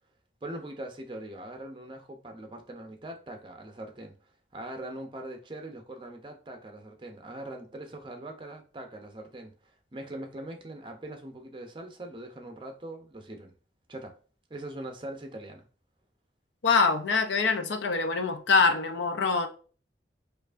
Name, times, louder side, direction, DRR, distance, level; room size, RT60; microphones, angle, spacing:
voice 1, 0.4-13.5 13.9-14.2 14.5-15.6, right 1 dB, 25° right, 0.5 m, -42 dB
voice 2, 16.6-19.5, left 4 dB, 90° left, 0.5 m, -24 dB
4.5 x 2.5 x 2.5 m
head